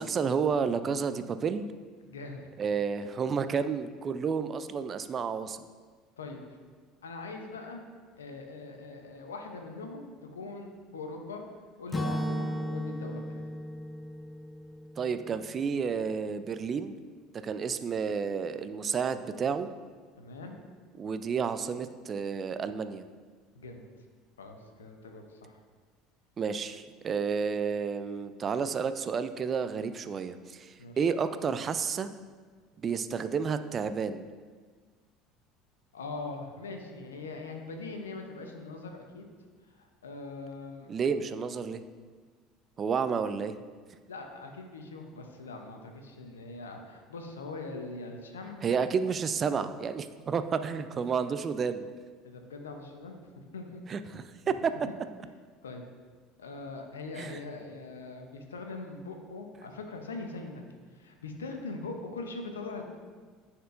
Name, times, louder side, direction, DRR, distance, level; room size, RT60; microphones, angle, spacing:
voice 1, 0.0-1.7 2.6-5.6 15.0-17.0 17.4-19.7 21.0-23.0 26.4-32.1 32.8-34.3 40.9-41.8 42.8-43.5 48.6-51.9 53.9-54.7 57.2-57.4, right 6 dB, 35° right, 11 dB, 0.4 m, -31 dB
voice 2, 2.0-2.5 6.2-6.4 7.0-7.8 8.2-11.4 11.8-13.4 20.2-20.6 23.5-23.8 24.4-25.6 30.8-31.0 35.9-39.3 39.7-40.9 44.1-48.6 52.2-53.8 54.4-54.5 55.6-55.8 56.4-62.8, left 3 dB, 85° left, 4 dB, 0.7 m, -42 dB
Acoustic guitar / Strum, 11.9-15.9, equal, 15° left, 0.7 m, -35 dB
10.0 x 4.4 x 2.5 m, 1.5 s
hypercardioid pair, 70°, 0 cm